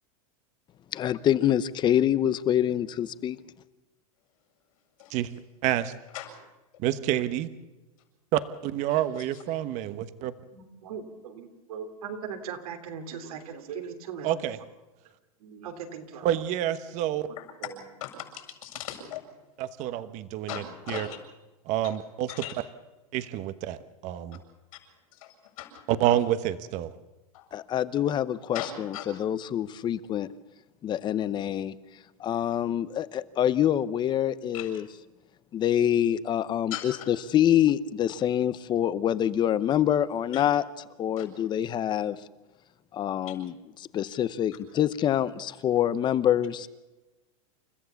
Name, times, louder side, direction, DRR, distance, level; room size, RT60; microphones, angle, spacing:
voice 1, 0.9-3.4 27.5-30.3 30.8-31.7 32.2-34.9 35.5-40.6 41.0-42.2 42.9-46.7, left 10 dB, 25° left, 16 dB, 0.8 m, -26 dB
voice 2, 5.6-5.9 6.8-7.5 8.3-10.3 14.2-14.6 16.2-17.3 19.6-21.1 21.7-22.3 23.1-23.8 24.0-24.4 25.9-26.9, right 12 dB, 40° right, 12 dB, 1.2 m, -28 dB
voice 3, 10.5-14.3 15.4-16.4 17.3-17.9, right 6 dB, 80° right, 5 dB, 3.3 m, -39 dB
voice 4, 18.0-19.2 20.5-21.2 21.8-21.9 22.3-22.5 25.2-25.8 27.3-27.4 28.5-29.0 34.5-34.7 36.7-37.0 40.3-40.4 41.2-41.3, left 10 dB, 75° left, 3 dB, 7.5 m, -38 dB
29.5 x 14.5 x 7.1 m, 1.1 s
supercardioid pair, 145°, 18 cm